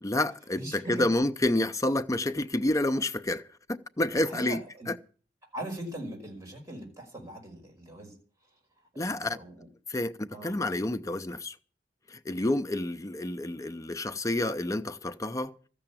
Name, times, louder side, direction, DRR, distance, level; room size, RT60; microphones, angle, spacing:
voice 1, 0.0-3.4 3.7-4.6 4.9-5.0 9.0-9.4 9.9-11.6 12.1-15.5, left 1 dB, 20° left, 0.6 m, -29 dB
voice 2, 0.5-1.1 4.2-4.9 5.5-8.1 8.9-9.7 10.3-10.6, right 1 dB, 20° right, 5.3 m, -40 dB
13.5 x 6.9 x 9.0 m
head